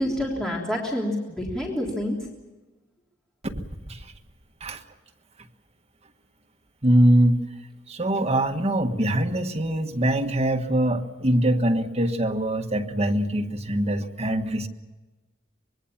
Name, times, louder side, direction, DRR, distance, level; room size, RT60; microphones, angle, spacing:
voice 1, 0.0-2.2, left 1 dB, 5° left, -3 dB, 3.4 m, -27 dB
voice 2, 6.8-7.4 7.9-14.7, right 1 dB, 30° right, 4 dB, 1.6 m, -23 dB
25.0 x 21.5 x 7.3 m, 1.2 s
head